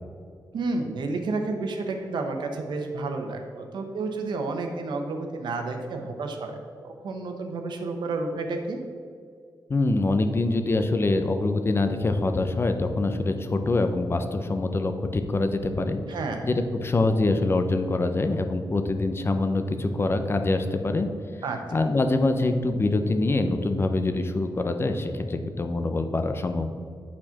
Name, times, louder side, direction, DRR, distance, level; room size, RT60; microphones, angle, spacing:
voice 1, 0.5-6.6 6.8-8.8 16.1-16.5 21.4-21.6, right 3 dB, 80° right, 4 dB, 1.0 m, -30 dB
voice 2, 9.7-16.0 16.4-21.1 21.7-26.7, left 2 dB, 30° left, 7 dB, 0.6 m, -24 dB
8.9 x 4.3 x 5.8 m, 2.2 s
cardioid pair, 100°, 8 cm